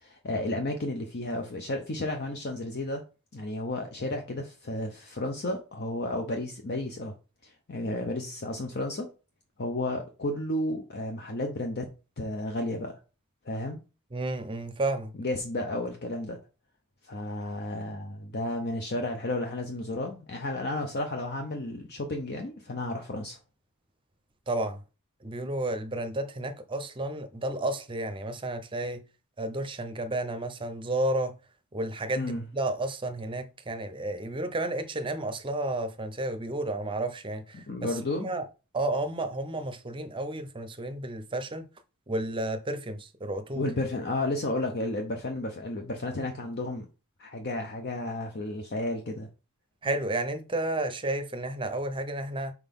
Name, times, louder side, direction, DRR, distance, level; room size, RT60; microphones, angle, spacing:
voice 1, 0.0-3.0 3.3-7.1 7.4-9.1 9.6-11.9 12.2-13.0 13.4-13.8 15.2-16.4 17.0-23.4 32.2-32.4 37.5-38.3 43.5-46.9 47.2-49.3, left 1 dB, 45° left, 0.7 m, -32 dB
voice 2, 14.1-15.1 24.5-24.8 25.2-29.0 29.4-31.4 31.7-38.4 38.7-41.7 42.1-43.7 49.8-52.5, right 2 dB, 20° right, 0.7 m, -32 dB
4.6 x 4.0 x 5.3 m
head